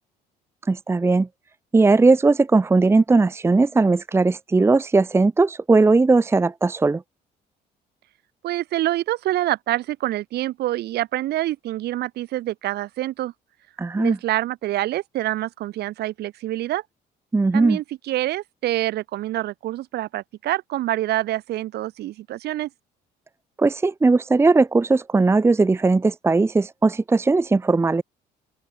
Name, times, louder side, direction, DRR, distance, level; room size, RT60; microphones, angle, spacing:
voice 1, 0.7-1.3 1.7-7.0 13.8-14.2 17.3-17.8 23.6-28.0, right 3 dB, 15° right, 0.8 m, -18 dB
voice 2, 8.4-13.3 13.9-16.8 17.5-22.7, right 15 dB, 75° right, 4.5 m, -26 dB
open air
cardioid pair, 110°, 17 cm